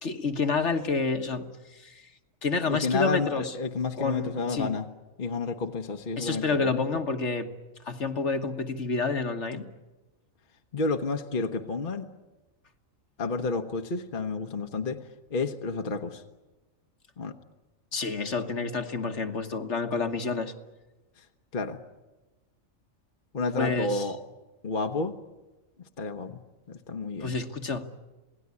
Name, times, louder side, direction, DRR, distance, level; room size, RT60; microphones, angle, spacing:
voice 1, 0.0-2.0 2.4-3.5 4.0-4.7 6.2-7.5 7.8-9.7 17.9-20.5 23.6-24.1 27.2-27.9, left 4 dB, 60° left, 6 dB, 1.7 m, -29 dB
voice 2, 2.7-4.9 5.2-6.8 10.7-12.1 13.2-16.2 17.2-17.4 21.5-21.8 23.3-24.2 24.6-25.2 26.0-26.4 26.7-27.3, left 4 dB, 40° left, 5 dB, 1.2 m, -30 dB
27.5 x 18.5 x 9.7 m, 1.1 s
omnidirectional pair, 1.4 m